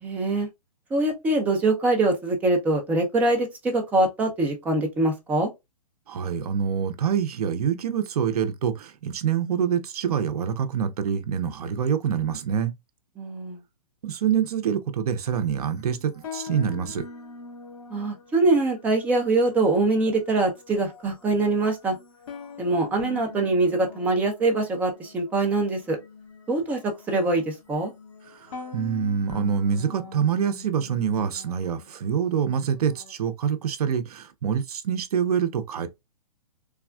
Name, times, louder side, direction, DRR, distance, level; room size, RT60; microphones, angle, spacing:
voice 1, 0.0-0.5 0.9-5.5 13.2-13.6 17.9-22.0 22.6-26.0 26.5-27.9, right 2 dB, 10° right, 0.4 m, -23 dB
voice 2, 6.1-12.7 14.0-17.0 28.3-35.9, right 7 dB, 70° right, 0.6 m, -26 dB
sound 1, 15.2-33.1, left 6 dB, 60° left, 1.4 m, -44 dB
3.3 x 2.3 x 2.2 m
hypercardioid pair, 155°, 20 cm